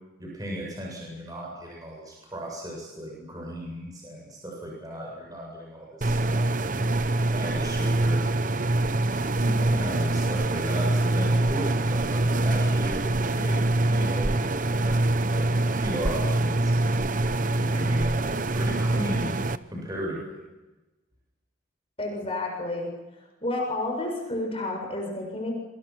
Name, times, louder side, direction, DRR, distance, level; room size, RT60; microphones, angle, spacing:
voice 1, 0.2-6.5 7.3-8.3 9.6-16.9 17.5-19.3 19.7-20.4, equal, 20° right, -2 dB, 7.8 m, -36 dB
sound 1, 6.0-19.6, right 2 dB, 40° right, 0.9 m, -24 dB
voice 2, 9.4-9.8 22.0-22.9 23.4-25.5, left 2 dB, 30° left, 1 dB, 7.1 m, -31 dB
28.0 x 26.0 x 6.2 m, 1.1 s
head